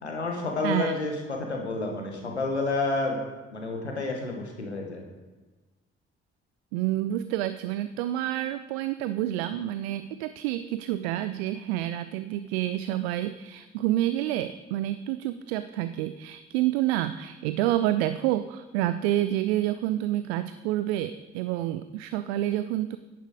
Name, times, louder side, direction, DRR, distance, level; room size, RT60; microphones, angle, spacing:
voice 1, 0.0-3.2 3.5-5.0, left 3 dB, 85° left, 2 dB, 1.1 m, -30 dB
voice 2, 0.6-1.0 6.7-23.0, right 13 dB, 65° right, 12 dB, 0.5 m, -28 dB
10.5 x 10.5 x 4.8 m, 1.2 s
figure-of-eight pair, 40°, 33 cm